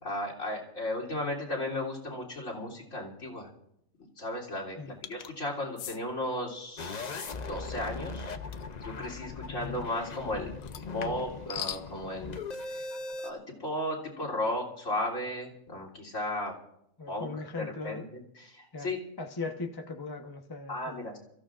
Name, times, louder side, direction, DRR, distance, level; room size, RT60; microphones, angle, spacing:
voice 1, 0.0-3.5 4.0-7.1 7.5-8.3 8.8-10.5 10.9-12.4 12.7-12.9 13.2-16.5 17.1-17.3 17.5-19.0 20.7-21.2, left 1 dB, 60° left, -1 dB, 3.6 m, -35 dB
sound 1, 5.0-5.3 5.8-6.0 8.5-8.7 10.6-11.9, left 9 dB, 80° left, 1.1 m, -39 dB
sound 2, 6.8-13.3, left 4 dB, 40° left, 0.7 m, -39 dB
voice 2, 17.0-18.0 18.7-18.9 19.2-21.0, left 3 dB, 20° left, 3 dB, 1.0 m, -38 dB
29.0 x 15.0 x 2.5 m, 0.77 s
omnidirectional pair, 1.5 m